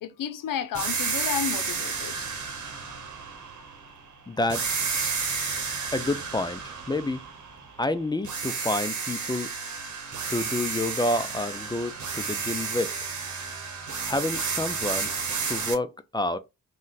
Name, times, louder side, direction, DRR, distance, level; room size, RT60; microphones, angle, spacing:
voice 1, 0.0-2.3, left 9 dB, 70° left, 0.6 m, -32 dB
sound 1, 0.7-4.0 4.5-7.9 8.2-15.7, right 5 dB, 55° right, 1.0 m, -31 dB
voice 2, 4.3-5.1 5.9-7.2 7.8-9.5 10.3-12.9 14.0-15.1 15.4-16.4, left 2 dB, 15° left, 0.3 m, -29 dB
2.4 x 2.2 x 3.9 m
cardioid pair, 65°, 34 cm